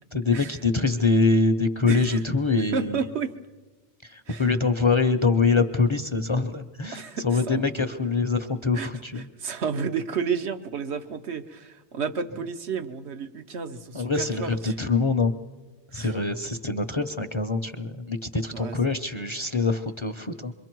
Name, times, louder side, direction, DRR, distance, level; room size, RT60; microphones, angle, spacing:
voice 1, 0.1-3.0 4.0-9.2 13.9-15.3 15.9-20.5, left 3 dB, 30° left, 8 dB, 0.6 m, -24 dB
voice 2, 1.8-2.2 2.7-3.4 4.3-4.5 6.9-7.7 8.7-14.7 15.9-16.2 18.5-18.8, right 5 dB, 75° right, 8 dB, 1.2 m, -32 dB
27.0 x 23.0 x 4.6 m, 1.2 s
omnidirectional pair, 1.1 m